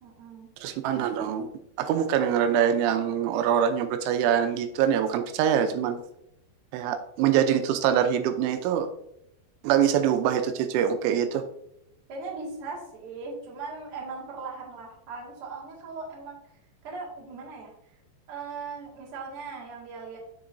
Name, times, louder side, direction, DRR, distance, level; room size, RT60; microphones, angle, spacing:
voice 1, 0.0-0.5 12.1-16.4 16.8-17.7 18.3-20.2, right 4 dB, 45° right, -4 dB, 1.8 m, -39 dB
voice 2, 0.6-1.5 1.8-6.0 6.7-8.9 9.6-11.4, right 9 dB, 90° right, 8 dB, 3.1 m, -24 dB
7.2 x 6.9 x 2.6 m, 0.78 s
omnidirectional pair, 5.3 m